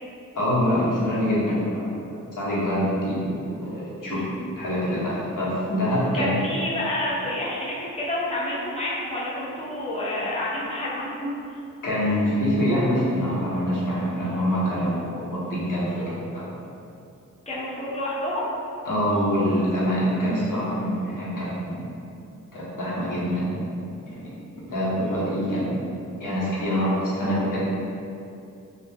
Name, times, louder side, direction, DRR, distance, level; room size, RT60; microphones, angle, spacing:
voice 1, 0.3-2.1 2.4-4.2 4.6-6.3 11.8-16.4 18.8-21.8 22.5-23.5 24.0-24.3 24.6-25.9 26.2-27.6, equal, 70° left, -8 dB, 1.0 m, -25 dB
voice 2, 6.1-11.6 17.5-18.5, left 1 dB, 20° left, -8 dB, 0.9 m, -29 dB
2.7 x 2.2 x 3.5 m, 2.6 s
cardioid pair, 50°, 33 cm